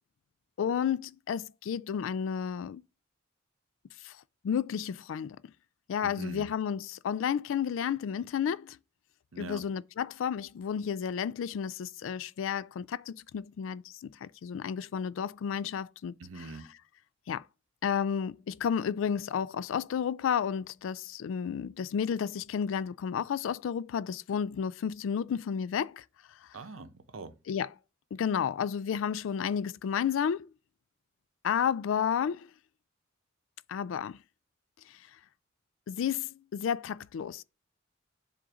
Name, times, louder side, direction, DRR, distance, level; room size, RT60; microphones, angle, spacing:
voice 1, 0.6-2.8 4.0-4.1 4.4-5.4 5.9-8.8 9.4-16.5 17.3-17.4 17.8-26.0 27.5-27.7 28.1-30.5 31.4-32.5 33.7-34.2 35.9-37.4, left 7 dB, 75° left, 0.3 m, -32 dB
voice 2, 6.0-6.5 9.3-9.6 16.2-16.7 26.5-27.3, right 3 dB, 80° right, 0.7 m, -43 dB
7.6 x 2.6 x 4.7 m
head